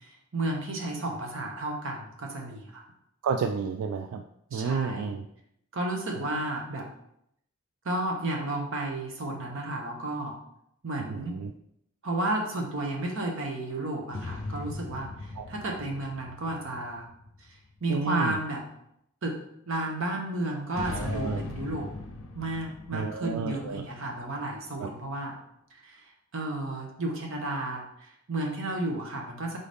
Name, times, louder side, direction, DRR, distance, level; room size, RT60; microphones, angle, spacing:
voice 1, 0.0-2.8 4.5-5.1 5.7-6.9 7.8-10.4 10.8-11.4 12.0-17.1 17.8-18.6 19.2-19.4 19.7-21.9 22.3-25.3 25.7-29.6, right 2 dB, 60° right, 1 dB, 0.9 m, -32 dB
voice 2, 3.2-4.2 4.5-5.3 6.2-6.3 11.0-11.5 15.4-15.5 17.9-18.4 20.9-21.4 22.9-23.8 24.8-24.9, right 5 dB, 85° right, 6 dB, 0.3 m, -31 dB
sound 1, 14.1-17.8 20.7-24.5, left 2 dB, 60° left, 0.6 m, -39 dB
4.0 x 3.9 x 3.4 m, 0.75 s
head